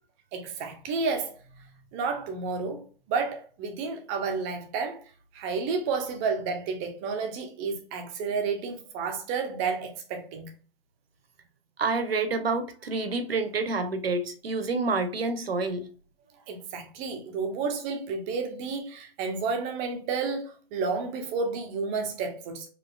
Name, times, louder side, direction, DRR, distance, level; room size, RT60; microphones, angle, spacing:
voice 1, 0.3-1.4 1.9-2.8 3.1-5.0 5.3-10.5 16.5-22.7, right 4 dB, 25° right, 0.7 m, -31 dB
voice 2, 11.8-15.9, right 3 dB, 80° right, 0.8 m, -28 dB
4.1 x 3.1 x 2.4 m
hypercardioid pair, 130°, 29 cm